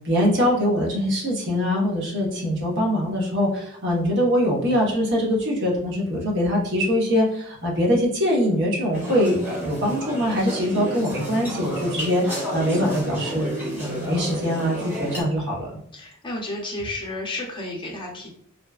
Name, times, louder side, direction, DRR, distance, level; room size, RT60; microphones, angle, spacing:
voice 1, 0.0-15.8, equal, 60° right, -2 dB, 0.9 m, -23 dB
sound 1, 8.9-15.2, equal, 10° right, 0.9 m, -31 dB
voice 2, 15.9-18.3, left 2 dB, 25° left, -2 dB, 0.7 m, -32 dB
3.0 x 2.1 x 2.3 m, 0.67 s
head